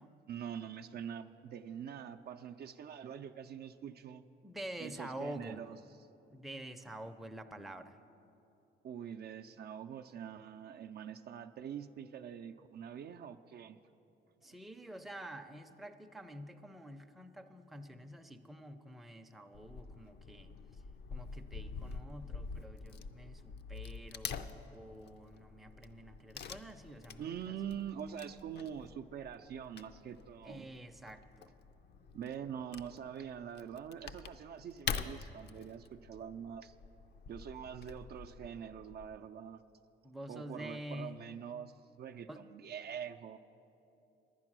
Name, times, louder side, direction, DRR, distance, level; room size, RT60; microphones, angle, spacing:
voice 1, 0.3-4.2 4.8-5.8 8.8-13.8 14.4-14.6 27.2-30.7 32.1-36.7 37.3-39.6 40.3-43.4, right 8 dB, 55° right, 7 dB, 0.4 m, -44 dB
voice 2, 4.4-5.6 6.3-8.0 14.4-20.8 21.1-27.8 30.4-31.5 40.0-41.2 42.3-42.5, right 1 dB, ahead, 6 dB, 0.5 m, -48 dB
Wood / Tearing, 19.5-39.2, left 6 dB, 60° left, 0.5 m, -46 dB
10.5 x 9.7 x 6.1 m, 2.9 s
cardioid pair, 90°, 20 cm